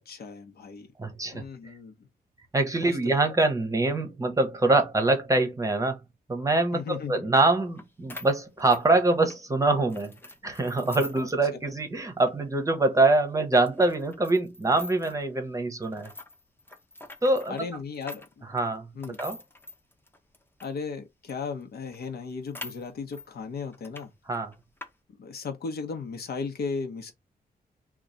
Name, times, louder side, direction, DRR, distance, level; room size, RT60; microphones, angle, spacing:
voice 1, 0.0-0.9 1.3-1.9 2.7-3.4 6.7-7.3 11.2-11.3 17.5-18.5 18.9-19.2 20.6-24.1 25.2-27.1, left 5 dB, 70° left, 1.0 m, -36 dB
voice 2, 1.0-1.4 2.5-6.0 6.3-10.1 10.4-16.1 17.2-17.6 18.5-18.9 19.2-19.4 24.3-24.5, right 2 dB, 20° right, 0.8 m, -24 dB
sound 1, 7.8-7.9 8.1-9.4 9.9-11.4 11.7-11.8 12.2-12.3 12.9-13.0 13.7-15.2 15.8-20.8 21.3-21.4 21.6-21.7 21.9-23.3 23.7-24.1 24.3-24.9, left 2 dB, 15° left, 0.6 m, -44 dB
3.0 x 2.4 x 3.8 m
wide cardioid pair, 125°, 17 cm